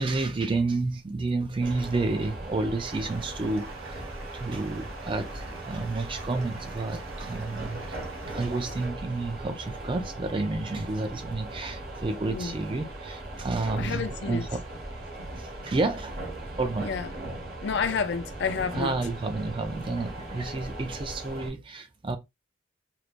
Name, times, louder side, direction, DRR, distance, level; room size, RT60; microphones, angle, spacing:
voice 1, 0.0-4.1 4.3-8.0 8.3-14.6 15.4-16.2 16.6-16.9 18.7-22.2, right 3 dB, 25° right, 0.3 m, -30 dB
sound 1, 1.6-21.5, right 1 dB, 50° right, 0.7 m, -39 dB
Stream, 2.8-8.9, right 3 dB, 90° right, 0.9 m, -47 dB
voice 2, 13.8-14.5 16.8-17.1 17.6-19.0, left 5 dB, 55° left, 0.4 m, -29 dB
3.1 x 2.1 x 2.4 m
head